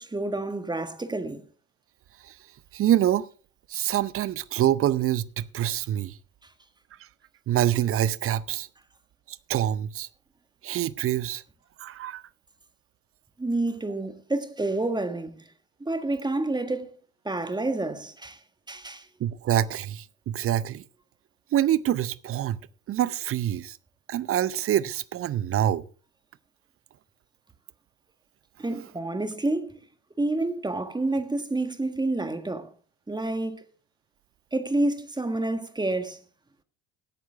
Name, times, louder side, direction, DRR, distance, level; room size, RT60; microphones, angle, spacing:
voice 1, 0.0-1.4 13.4-15.3 15.8-16.9 17.2-18.4 18.7-19.1 28.6-29.8 30.2-32.7 33.1-33.6 34.5-36.2, right 2 dB, 10° right, 1.5 m, -28 dB
voice 2, 2.7-3.3 3.7-6.2 7.5-8.7 9.3-10.1 10.6-11.4 11.8-12.2 19.2-20.8 21.5-23.8 24.1-25.8, right 11 dB, 35° right, 0.6 m, -26 dB
16.5 x 9.3 x 3.4 m
figure-of-eight pair, 60°, 42 cm